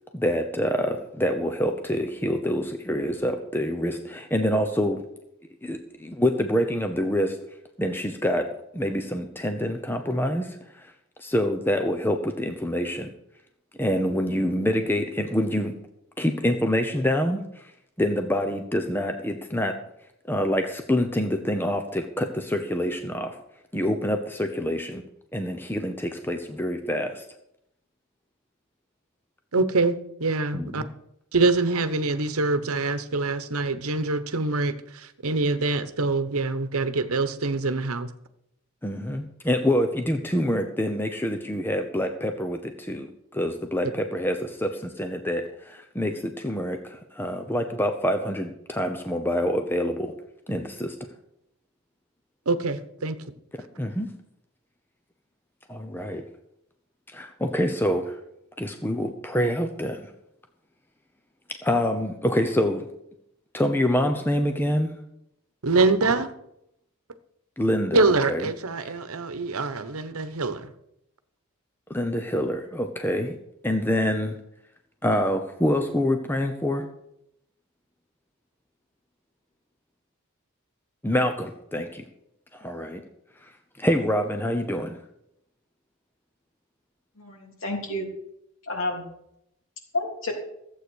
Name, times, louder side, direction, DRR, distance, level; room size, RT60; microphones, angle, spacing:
voice 1, 0.1-5.0 5.6-7.4 7.8-8.5 8.7-10.9 11.2-13.1 13.8-15.8 16.2-17.7 18.0-19.8 20.3-23.4 23.7-25.0 25.3-27.3 30.5-30.9 38.8-50.1 50.5-51.0 53.8-54.1 55.7-56.3 57.1-58.2 58.6-60.0 61.5-62.9 63.5-65.0 67.6-68.5 71.9-73.4 73.6-74.4 75.0-76.9 81.0-82.1 82.5-83.0 83.4-83.5 83.8-85.0, equal, 10° left, 0.8 m, -26 dB
voice 2, 29.5-30.8 31.3-38.1 52.5-53.2 65.6-66.3 67.9-70.7, right 3 dB, 80° right, 1.1 m, -24 dB
voice 3, 87.2-88.1 88.7-89.0 89.9-90.3, left 2 dB, 65° left, 3.4 m, -30 dB
14.5 x 8.2 x 6.3 m
head